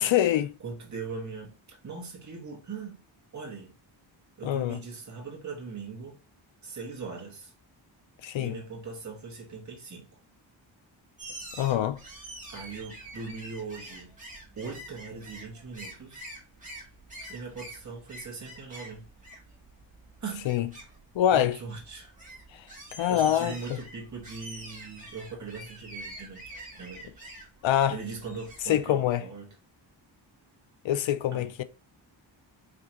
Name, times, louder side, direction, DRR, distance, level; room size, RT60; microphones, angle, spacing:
voice 1, 0.0-0.5 4.4-4.8 8.2-8.6 11.6-12.0 20.5-20.7 21.1-21.6 22.5-22.6 23.0-23.5 27.6-28.0 28.7-29.2 30.8-31.6, left 11 dB, 75° left, 0.5 m, -25 dB
voice 2, 0.6-3.0 3.3-3.7 4.4-6.2 6.6-7.5 8.4-10.2 12.5-14.1 14.5-16.2 17.3-19.1 20.2-20.5 21.3-22.1 23.1-27.3 27.9-29.5 31.3-31.5, right 4 dB, 35° right, 1.7 m, -40 dB
sound 1, 11.2-28.8, right 1 dB, 15° right, 1.8 m, -46 dB
5.1 x 3.4 x 2.9 m
wide cardioid pair, 160°, 47 cm